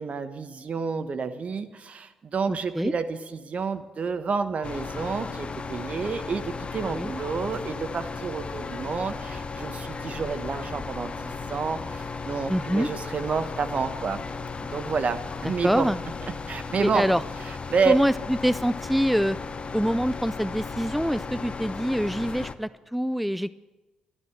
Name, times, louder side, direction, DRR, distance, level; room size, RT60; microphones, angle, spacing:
voice 1, 0.0-14.2 14.6-15.9 16.3-17.1 17.4-18.0, right 5 dB, 50° right, 9 dB, 1.1 m, -29 dB
voice 2, 2.5-2.9 6.9-7.1 12.5-12.9 15.6-16.0 16.8-17.2 17.9-19.4 19.7-23.6, equal, ahead, 17 dB, 0.4 m, -25 dB
sound 1, 4.6-22.5, left 4 dB, 40° left, 0.9 m, -35 dB
12.5 x 12.0 x 7.6 m, 1.2 s
hypercardioid pair, 45°, 3 cm